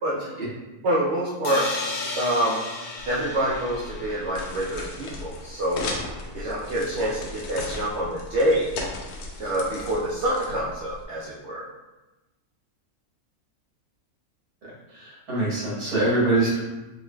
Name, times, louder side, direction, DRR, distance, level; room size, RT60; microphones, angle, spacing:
voice 1, 0.8-1.6 2.2-2.6 3.1-5.8 6.3-8.7 9.4-11.6, right 1 dB, 60° right, -6 dB, 0.7 m, -26 dB
sound 1, 1.4-5.2, left 3 dB, 65° left, 0.6 m, -34 dB
sound 2, 3.0-11.0, left 2 dB, 85° left, 1.1 m, -37 dB
voice 2, 14.9-16.6, right 2 dB, 85° right, -7 dB, 1.9 m, -24 dB
4.7 x 3.0 x 2.2 m, 1.1 s
omnidirectional pair, 1.6 m